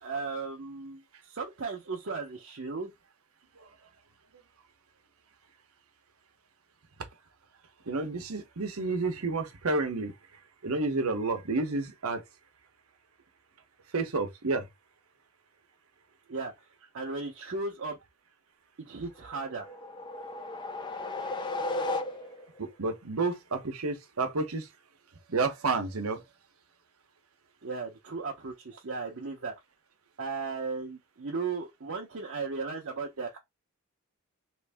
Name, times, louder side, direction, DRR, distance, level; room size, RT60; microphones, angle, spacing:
voice 1, 0.0-2.9 16.3-16.5 16.9-18.0 18.8-19.7 27.6-29.5 30.2-33.4, right 4 dB, 60° right, 0.7 m, -36 dB
voice 2, 7.9-10.1 10.6-12.2 13.9-14.7 22.6-24.7 25.3-26.2, right 3 dB, 90° right, 0.9 m, -30 dB
sound 1, 19.3-22.6, left 2 dB, 20° left, 0.3 m, -35 dB
3.1 x 2.6 x 3.4 m
head